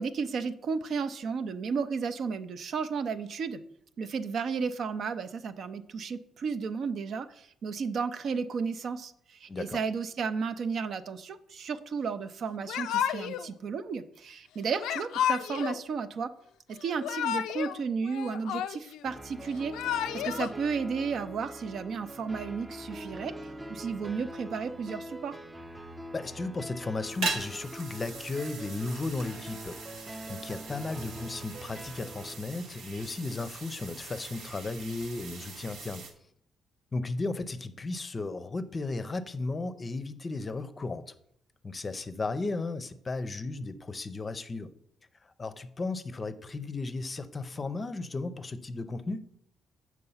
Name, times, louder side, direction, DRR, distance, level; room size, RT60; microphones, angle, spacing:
voice 1, 0.0-3.6 4.0-16.3 16.7-23.3 23.7-25.3, right 5 dB, 60° right, 11 dB, 0.5 m, -33 dB
voice 2, 9.5-9.8 26.1-29.8 30.1-36.1 36.9-41.1 41.6-44.7 45.4-49.3, left 3 dB, 30° left, 12 dB, 0.6 m, -35 dB
Yell / Crying sobbing, 12.7-13.5 14.8-15.8 16.8-17.8 18.0-19.0 19.6-20.5, left 10 dB, 85° left, 0.3 m, -31 dB
sound 1, 19.0-32.4, right 1 dB, 20° right, 0.6 m, -44 dB
sound 2, 27.0-36.1, right 4 dB, 85° right, 1.2 m, -41 dB
6.7 x 4.7 x 5.6 m, 0.71 s
cardioid pair, 90°, 0 cm